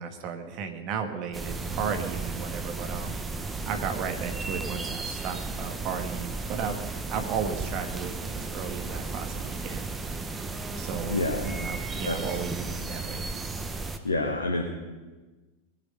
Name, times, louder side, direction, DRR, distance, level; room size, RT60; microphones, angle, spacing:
voice 1, 0.0-6.8 7.1-9.9 10.8-13.3, right 6 dB, 40° right, 6 dB, 1.9 m, -34 dB
sound 1, 1.3-14.0, right 3 dB, 15° right, 1.2 m, -34 dB
voice 2, 11.1-11.5 12.0-12.2 14.0-14.6, left 2 dB, 75° left, 2 dB, 1.6 m, -27 dB
21.0 x 9.2 x 5.6 m, 1.2 s
figure-of-eight pair, 90°, 0 cm